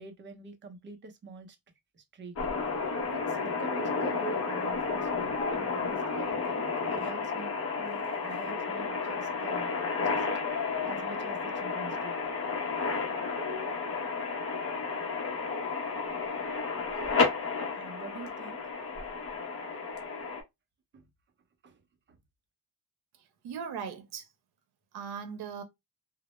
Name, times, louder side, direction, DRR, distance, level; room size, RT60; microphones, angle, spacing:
voice 1, 0.0-1.5 1.9-2.3 3.1-10.3 10.8-12.2 17.8-18.7 20.9-21.0 21.6-21.8, right 4 dB, 30° right, 0.5 m, -46 dB
sound 1, 2.4-20.4, left 4 dB, 35° left, 0.7 m, -32 dB
voice 2, 23.1-24.3 24.9-25.6, right 7 dB, 75° right, 0.7 m, -39 dB
2.1 x 2.0 x 2.9 m
cardioid pair, 130°, 38 cm